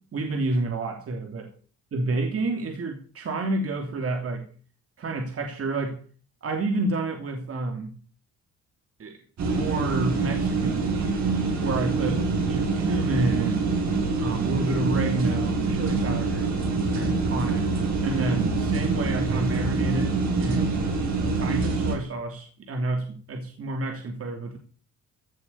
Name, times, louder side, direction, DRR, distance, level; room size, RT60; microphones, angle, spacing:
voice 1, 0.1-1.5 1.9-4.4 5.0-6.0 6.4-7.9 9.0-11.2 11.6-13.7 14.2-16.5 16.9-17.7 18.0-20.8 21.2-24.6, right 2 dB, 50° right, 4 dB, 3.0 m, -29 dB
sound 1, 9.4-22.0, right 3 dB, 65° right, 7.6 m, -25 dB
16.5 x 7.4 x 8.5 m, 0.41 s
cardioid pair, 90°, 30 cm